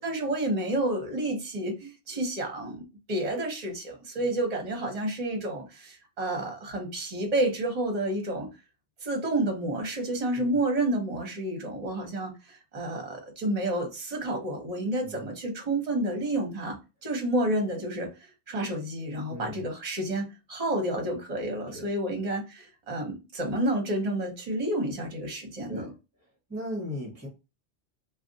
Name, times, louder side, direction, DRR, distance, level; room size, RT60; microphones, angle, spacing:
voice 1, 0.0-8.5 9.0-25.9, right 1 dB, 40° right, 0.9 m, -30 dB
voice 2, 19.3-19.6 21.7-21.9 25.7-25.9 26.5-27.3, equal, 15° right, 1.0 m, -37 dB
2.4 x 2.2 x 3.8 m
omnidirectional pair, 1.2 m